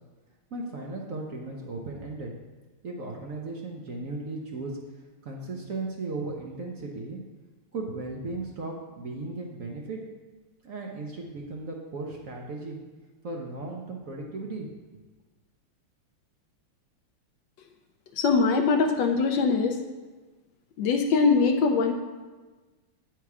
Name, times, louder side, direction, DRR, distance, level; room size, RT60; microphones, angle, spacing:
voice 1, 0.5-2.3 2.8-4.8 5.2-7.2 7.7-10.0 10.6-12.8 13.2-14.7, right 3 dB, 70° right, -1 dB, 0.8 m, -36 dB
voice 2, 18.1-19.8 20.8-21.9, left 4 dB, 75° left, 4 dB, 1.1 m, -22 dB
8.2 x 4.6 x 4.8 m, 1.3 s
omnidirectional pair, 2.4 m